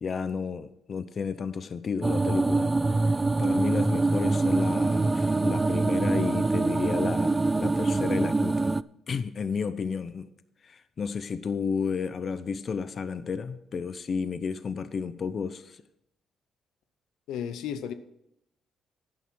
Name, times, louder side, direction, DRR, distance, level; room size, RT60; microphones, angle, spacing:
voice 1, 0.0-2.7 3.4-8.7 9.1-10.3 10.6-15.8, left 5 dB, 45° left, 0.6 m, -32 dB
sound 1, 2.0-8.8, right 3 dB, 20° right, 0.3 m, -24 dB
voice 2, 17.3-17.9, left 8 dB, 85° left, 0.8 m, -33 dB
12.0 x 9.4 x 4.6 m
cardioid pair, 90°, 0 cm